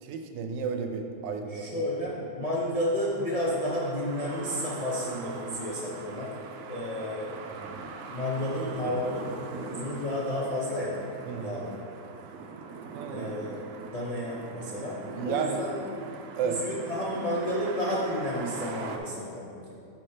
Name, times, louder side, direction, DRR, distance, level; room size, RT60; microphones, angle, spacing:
voice 1, 0.0-1.8 7.6-7.7 11.3-11.6 12.9-13.3 15.2-15.6 16.4-16.6, right 6 dB, 90° right, 5 dB, 1.2 m, -32 dB
voice 2, 1.5-6.3 6.7-7.3 8.1-10.9 11.4-11.9 13.1-13.6 13.9-16.0 16.4-19.7, left 1 dB, 85° left, -6 dB, 0.3 m, -31 dB
sound 1, 2.9-19.0, right 5 dB, 70° right, 0.9 m, -42 dB
6.0 x 4.3 x 4.9 m, 2.5 s
omnidirectional pair, 1.9 m